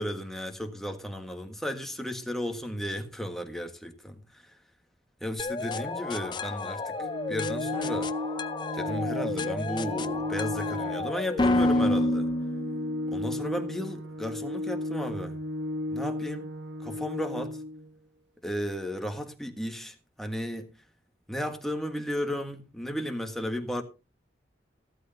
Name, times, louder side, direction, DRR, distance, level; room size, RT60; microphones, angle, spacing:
voice 1, 0.0-4.4 5.2-7.0 7.3-8.1 8.7-12.3 13.1-15.4 15.9-16.5 16.8-17.6 18.4-20.7 21.3-23.8, equal, ahead, 1.5 m, -34 dB
sound 1, 5.4-13.2, left 2 dB, 25° left, 0.6 m, -30 dB
Organ, 6.9-17.9, left 1 dB, 90° right, 1.1 m, -34 dB
15.0 x 12.5 x 2.7 m
head